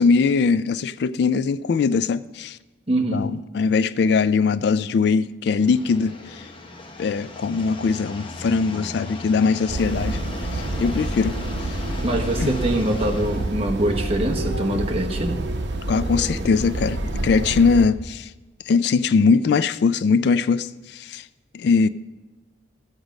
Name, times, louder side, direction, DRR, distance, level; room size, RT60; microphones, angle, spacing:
voice 1, 0.0-2.6 3.1-6.4 7.0-10.2 10.5-11.4 12.4-12.5 15.9-18.3 18.7-21.2 21.5-21.9, left 5 dB, 60° left, 0.3 m, -21 dB
voice 2, 2.9-3.3 12.0-15.4, right 1 dB, 30° right, 1.0 m, -23 dB
sound 1, 5.5-13.5, left 2 dB, 30° left, 0.8 m, -37 dB
sound 2, 9.7-17.9, right 1 dB, 70° right, 0.9 m, -28 dB
13.5 x 8.1 x 5.1 m
head